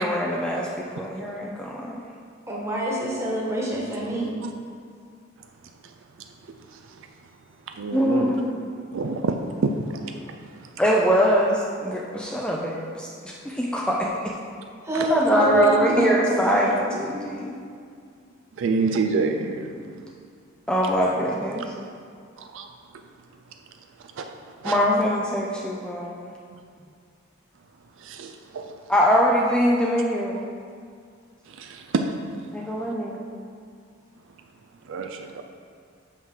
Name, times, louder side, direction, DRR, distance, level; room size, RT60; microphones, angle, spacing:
voice 1, 0.0-2.0 7.9-8.5 10.8-13.1 13.4-14.1 15.1-17.5 20.7-21.7 24.6-26.3 28.9-30.4 32.5-33.2, equal, 5° left, -3 dB, 0.5 m, -23 dB
voice 2, 2.5-4.3 14.8-16.6 17.1-17.4 17.7-17.8 19.8-19.9, right 1 dB, 15° right, -4 dB, 1.4 m, -26 dB
voice 3, 7.7-8.3 8.9-10.4 14.9-15.1 15.4-15.8 18.6-19.7 22.4-22.7 24.2-24.3 24.6-24.8 28.0-28.7 31.5-32.2 34.9-35.4, right 4 dB, 65° right, 5 dB, 0.4 m, -27 dB
6.2 x 5.7 x 4.8 m, 2.2 s
head